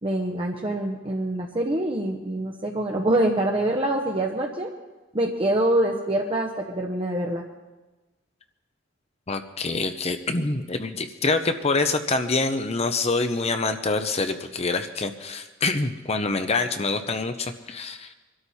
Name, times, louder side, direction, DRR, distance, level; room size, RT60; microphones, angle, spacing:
voice 1, 0.0-4.7 5.1-7.4, right 1 dB, 30° right, 1 dB, 1.0 m, -25 dB
voice 2, 9.3-18.1, left 3 dB, 35° left, 8 dB, 0.8 m, -26 dB
23.5 x 12.5 x 4.2 m, 1.2 s
head